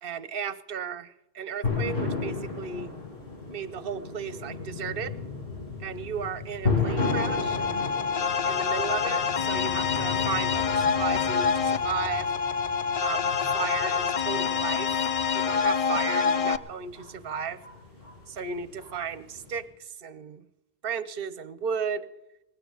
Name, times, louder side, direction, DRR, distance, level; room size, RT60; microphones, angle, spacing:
voice 1, 0.0-2.9 3.5-5.1 5.8-7.6 8.4-12.3 13.0-14.9 15.3-17.6 18.3-20.5 20.8-22.1, right 6 dB, 65° right, 14 dB, 1.0 m, -35 dB
sound 1, 1.6-19.6, left 4 dB, 65° left, 7.2 m, -35 dB
sound 2, 7.0-16.6, left 6 dB, 45° left, 0.5 m, -26 dB
19.0 x 16.0 x 3.9 m, 0.95 s
omnidirectional pair, 1.0 m